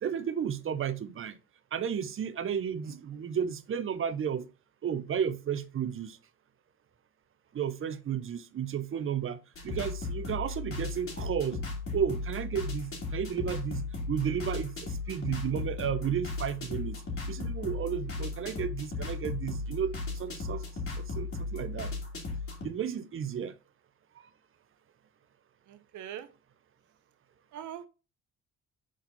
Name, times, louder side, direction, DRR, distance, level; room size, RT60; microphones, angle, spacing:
voice 1, 0.0-1.4 1.7-4.5 4.8-6.2 7.5-9.4 9.6-11.6 11.9-17.0 17.3-20.6 21.0-21.9 22.6-23.5, right 8 dB, 45° right, 0.7 m, -33 dB
sound 1, 9.6-22.7, left 3 dB, 45° left, 2.7 m, -36 dB
voice 2, 25.7-26.3 27.5-27.9, right 10 dB, 80° right, 0.8 m, -42 dB
6.1 x 4.3 x 4.0 m
cardioid pair, 90°, 30 cm